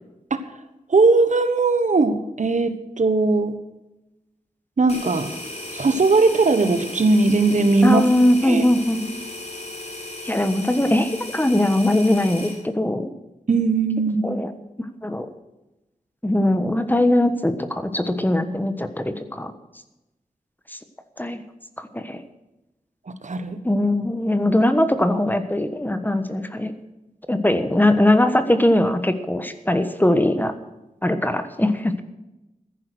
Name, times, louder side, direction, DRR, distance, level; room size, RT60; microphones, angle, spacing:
voice 1, 0.9-3.6 4.8-5.3 5.7-8.0 8.4-8.6 13.5-14.4 23.2-23.6, right 3 dB, 65° right, 10 dB, 1.3 m, -19 dB
sound 1, 4.9-12.6, left 1 dB, 55° left, 5.7 m, -35 dB
voice 2, 7.8-9.1 10.2-13.1 14.2-14.5 15.0-15.3 16.2-19.5 21.2-21.4 21.9-22.2 23.6-26.7 27.3-30.5 31.0-32.0, left 1 dB, 15° left, 9 dB, 1.3 m, -20 dB
14.5 x 10.5 x 6.4 m, 0.97 s
wide cardioid pair, 85°, 14 cm